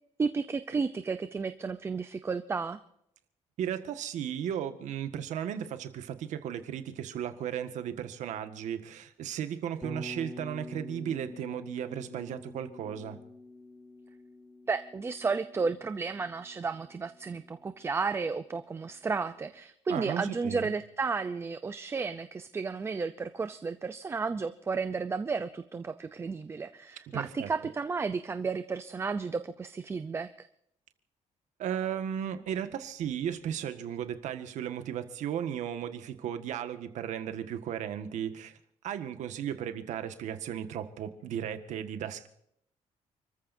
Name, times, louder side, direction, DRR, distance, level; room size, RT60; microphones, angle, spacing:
voice 1, 0.2-2.8 14.7-30.5, right 4 dB, 20° right, 11 dB, 0.6 m, -33 dB
voice 2, 3.6-13.2 19.9-20.7 27.1-27.5 31.6-38.6 38.8-42.3, right 9 dB, 80° right, 8 dB, 1.7 m, -35 dB
Bass guitar, 9.8-17.9, left 2 dB, ahead, 1.6 m, -47 dB
29.5 x 14.5 x 2.7 m, 0.73 s
cardioid pair, 170°, 12 cm